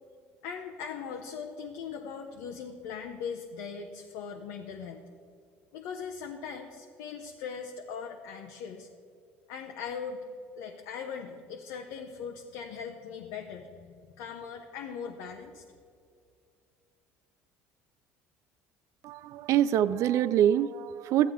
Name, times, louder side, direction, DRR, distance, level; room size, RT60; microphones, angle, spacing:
voice 1, 0.4-5.0 5.7-8.9 9.5-10.3 10.6-15.6, left 6 dB, 80° left, 1 dB, 0.7 m, -40 dB
voice 2, 19.0-21.3, right 10 dB, 60° right, 16 dB, 0.4 m, -25 dB
13.5 x 8.5 x 3.6 m, 2.3 s
supercardioid pair, 80°, 6 cm